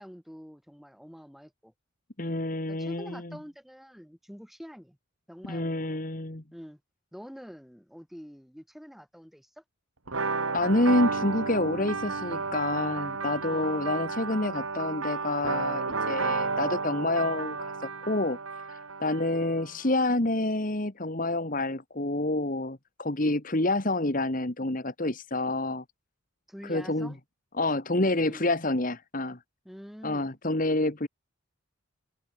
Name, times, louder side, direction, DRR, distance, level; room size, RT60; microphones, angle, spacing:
voice 1, 0.0-1.7 2.7-5.0 5.3-6.0 6.5-6.8 7.1-9.6 13.5-13.8 19.0-19.2 26.5-27.2 28.1-28.5 29.6-30.4, equal, ahead, 6.6 m, -46 dB
voice 2, 2.2-3.2 5.4-6.4 10.5-18.4 18.7-25.8 26.6-27.1 27.6-29.4 30.0-31.1, left 2 dB, 40° left, 1.8 m, -28 dB
sound 1, 10.1-19.7, right 4 dB, 75° right, 2.5 m, -32 dB
head